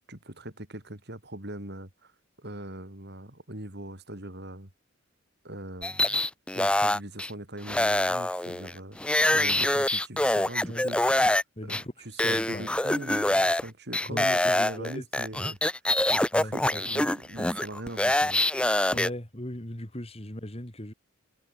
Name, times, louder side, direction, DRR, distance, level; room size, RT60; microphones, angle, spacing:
voice 1, 0.1-2.1 2.4-4.7 5.4-6.2 6.5-9.0 9.3-11.0 11.6-15.6 16.1-18.4, right 1 dB, 50° right, 4.2 m, -41 dB
sound 1, 5.8-7.3 7.7-11.4 11.7-11.8 12.2-13.6 13.9-19.1, left 1 dB, 5° left, 0.4 m, -25 dB
voice 2, 11.6-12.7 14.1-15.1 16.3-16.8 18.9-20.9, left 1 dB, 30° left, 2.8 m, -38 dB
head